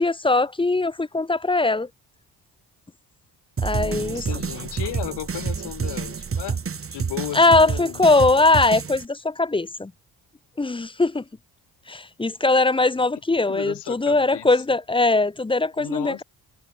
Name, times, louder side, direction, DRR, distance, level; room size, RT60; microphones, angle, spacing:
voice 1, 0.0-1.9 3.6-4.2 7.3-9.9 10.6-11.2 11.9-16.2, left 3 dB, 15° left, 0.6 m, -20 dB
sound 1, 3.6-9.1, right 6 dB, 35° right, 1.6 m, -29 dB
voice 2, 3.7-6.6 6.9-8.1 12.6-12.7 13.5-14.6 15.8-16.2, left 14 dB, 80° left, 2.2 m, -35 dB
cardioid pair, 75°, 41 cm